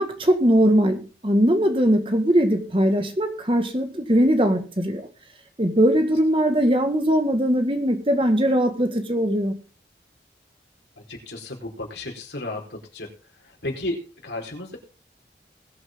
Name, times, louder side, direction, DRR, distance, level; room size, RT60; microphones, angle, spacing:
voice 1, 0.0-5.1 5.6-9.6, equal, 30° right, 1.8 m, -20 dB
voice 2, 11.1-13.1 13.6-14.8, left 2 dB, 85° left, 4.5 m, -33 dB
21.0 x 7.9 x 3.8 m
head